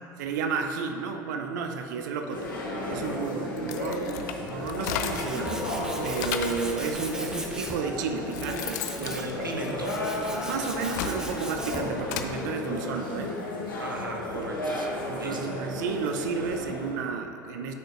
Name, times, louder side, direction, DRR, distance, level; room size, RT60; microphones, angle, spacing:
voice 1, 0.2-2.5 2.9-5.7 6.0-9.5 10.4-13.3 15.1-17.7, right 5 dB, 60° right, 5 dB, 0.6 m, -32 dB
sound 1, 2.3-16.9, left 1 dB, 80° left, 1.5 m, -34 dB
sound 2, 3.5-5.4 5.8-6.7 7.5-7.6 8.1-10.2 10.7-12.3, left 8 dB, 60° left, 0.5 m, -35 dB
Tools, 4.5-12.0, right 1 dB, 5° right, 0.9 m, -39 dB
voice 2, 9.0-10.0 13.8-14.9 15.2-15.4, right 1 dB, 90° right, 0 dB, 0.9 m, -36 dB
12.0 x 6.4 x 2.5 m, 2.8 s
figure-of-eight pair, 75°, 11 cm